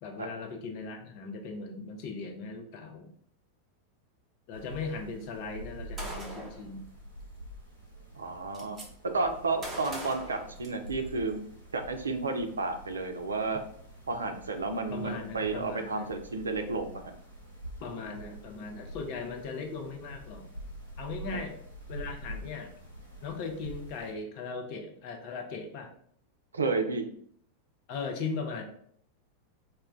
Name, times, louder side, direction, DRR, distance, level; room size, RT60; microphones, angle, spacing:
voice 1, 0.0-3.1 4.5-6.8 14.9-16.1 17.8-20.4 21.0-21.6 21.9-22.7 23.2-25.9 27.9-28.6, left 4 dB, 45° left, 3 dB, 0.5 m, -38 dB
sound 1, 4.5-24.1, right 1 dB, 80° left, 0.9 m, -46 dB
Gunshot gunfire, 6.0-6.6 7.8-7.9 8.1-8.9 9.6-11.1, right 1 dB, 20° right, 0.8 m, -41 dB
voice 2, 8.2-8.8 9.1-11.4 11.7-13.6 14.1-17.1 26.5-27.1, right 3 dB, 75° right, 6 dB, 0.3 m, -31 dB
2.1 x 2.1 x 3.6 m, 0.63 s
figure-of-eight pair, 90°, 0 cm